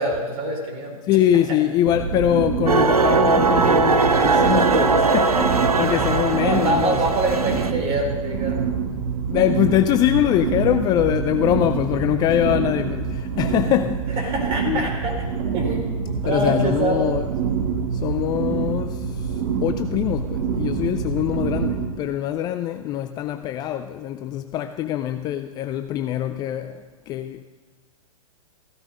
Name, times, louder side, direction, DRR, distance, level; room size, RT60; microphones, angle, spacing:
voice 1, 0.0-1.0 6.4-8.7 14.2-15.1 15.5-17.1, right 2 dB, 30° right, 3.9 m, -25 dB
voice 2, 1.0-7.0 9.3-14.3 14.6-14.9 16.2-17.3 17.9-27.4, left 12 dB, 20° left, 0.4 m, -23 dB
sound 1, 1.9-21.9, right 6 dB, 45° right, 2.2 m, -26 dB
sound 2, 2.7-7.7, right 4 dB, 85° right, 0.9 m, -20 dB
15.0 x 13.0 x 5.4 m
figure-of-eight pair, 115°, 19 cm